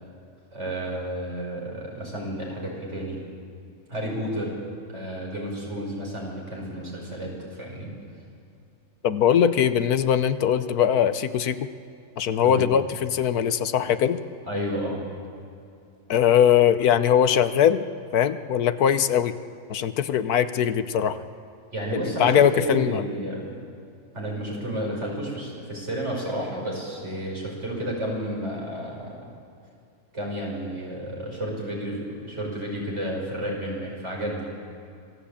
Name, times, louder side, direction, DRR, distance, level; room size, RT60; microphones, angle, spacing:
voice 1, 0.5-3.2 3.9-4.5 4.9-7.9 12.4-12.7 14.5-15.0 21.7-23.6 24.1-29.2 30.1-34.5, right 1 dB, 50° right, -2 dB, 6.2 m, -31 dB
voice 2, 9.0-11.7 12.2-14.2 16.1-17.8 18.1-19.3 19.7-21.2 21.9-23.0, left 9 dB, 85° left, 12 dB, 1.4 m, -21 dB
26.0 x 17.0 x 8.6 m, 2.5 s
omnidirectional pair, 1.6 m